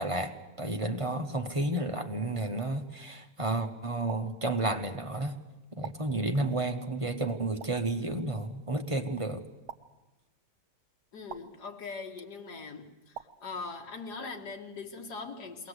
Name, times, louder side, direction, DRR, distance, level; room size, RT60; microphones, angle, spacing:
voice 1, 0.0-5.4 5.8-9.4, right 2 dB, 25° right, 5 dB, 0.9 m, -31 dB
sound 1, 4.1-4.2 5.8-6.0 7.6-7.7 9.7-9.8 11.3-11.4 13.1-13.3, right 9 dB, 70° right, 1.4 m, -41 dB
voice 2, 11.1-15.7, left 4 dB, 80° left, 3 dB, 2.3 m, -41 dB
22.0 x 18.0 x 8.1 m, 1.1 s
omnidirectional pair, 1.7 m